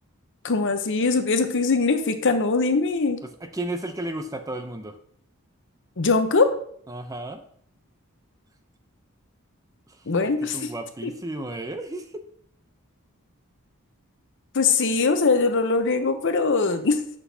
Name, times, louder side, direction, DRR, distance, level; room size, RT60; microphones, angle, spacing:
voice 1, 0.4-3.2 6.0-6.5 10.1-10.7 14.5-17.0, left 4 dB, 55° left, 8 dB, 0.8 m, -21 dB
voice 2, 3.2-5.0 6.9-7.4 9.9-12.2, right 1 dB, 15° right, 7 dB, 0.5 m, -34 dB
7.9 x 6.0 x 2.8 m, 0.63 s
head